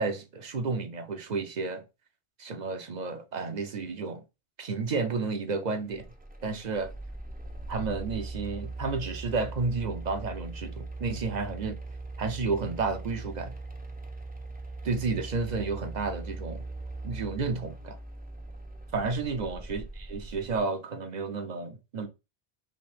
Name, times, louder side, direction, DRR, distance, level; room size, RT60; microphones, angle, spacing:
voice 1, 0.0-1.8 2.4-4.2 4.6-6.0 6.4-6.9 7.7-11.8 12.2-13.6 14.8-16.6 17.0-18.0 18.9-22.1, right 4 dB, 50° right, 0.6 m, -31 dB
sound 1, 5.9-20.6, right 2 dB, 15° right, 0.4 m, -40 dB
3.6 x 2.8 x 4.1 m
omnidirectional pair, 1.1 m